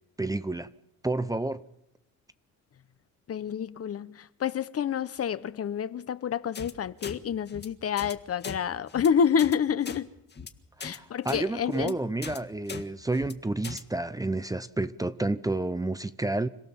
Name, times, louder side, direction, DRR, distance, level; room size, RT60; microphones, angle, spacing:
voice 1, 0.2-0.7 1.0-1.6 10.8-16.5, right 2 dB, 10° right, 0.8 m, -30 dB
voice 2, 3.3-10.1 10.8-11.9, left 7 dB, 50° left, 1.1 m, -28 dB
sound 1, 6.5-6.7 7.0-7.2 7.5-7.7 8.0-8.1 8.4-8.6 8.9-9.1 9.4-9.6 9.8-10.0 10.3-10.5 10.8-11.0 11.3-11.4 11.7-11.9 12.2-12.4 12.7-12.8 13.1-13.3 13.6-13.8, left 5 dB, 35° left, 1.9 m, -39 dB
26.5 x 17.0 x 7.2 m
cardioid pair, 90°, 30 cm